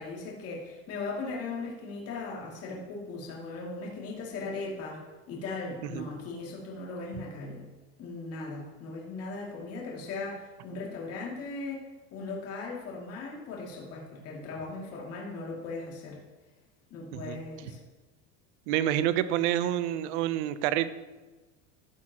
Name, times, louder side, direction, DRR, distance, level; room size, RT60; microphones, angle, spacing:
voice 1, 0.0-7.7 8.0-11.8 12.1-16.2 16.9-17.8, left 3 dB, 40° left, -3 dB, 2.6 m, -38 dB
voice 2, 18.7-20.9, right 12 dB, 70° right, 13 dB, 0.8 m, -28 dB
14.0 x 8.5 x 3.0 m, 1.2 s
supercardioid pair, 145°, 35 cm